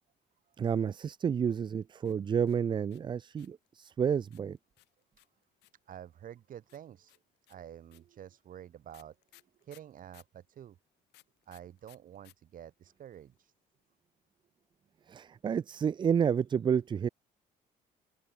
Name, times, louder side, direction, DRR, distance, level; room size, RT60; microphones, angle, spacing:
voice 1, 0.6-4.6 15.1-17.1, right 7 dB, 30° right, 0.4 m, -30 dB
sound 1, 2.0-3.7 4.3-5.9 6.7-10.4 11.1-12.3 12.6-12.7 12.9-13.4, left 19 dB, 85° left, 7.7 m, -62 dB
voice 2, 5.9-7.2 7.5-10.8 11.5-13.5, right 10 dB, 55° right, 2.3 m, -49 dB
open air
cardioid pair, 110°, 17 cm